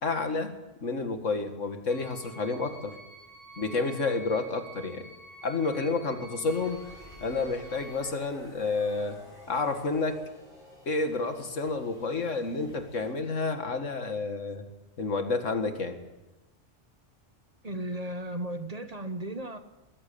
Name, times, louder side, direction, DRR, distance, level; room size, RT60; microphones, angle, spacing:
voice 1, 0.0-2.9 3.6-5.0 5.4-6.9 7.2-9.2 9.5-10.2 10.9-14.6 15.0-16.0, left 3 dB, 85° left, 6 dB, 2.3 m, -30 dB
sound 1, 1.9-8.1, right 1 dB, 15° right, 3.2 m, -49 dB
sound 2, 6.5-13.2, left 1 dB, 45° left, 6.7 m, -52 dB
voice 2, 17.6-19.6, right 1 dB, 35° right, 9 dB, 1.2 m, -35 dB
21.0 x 14.5 x 8.7 m, 1.0 s
omnidirectional pair, 1.2 m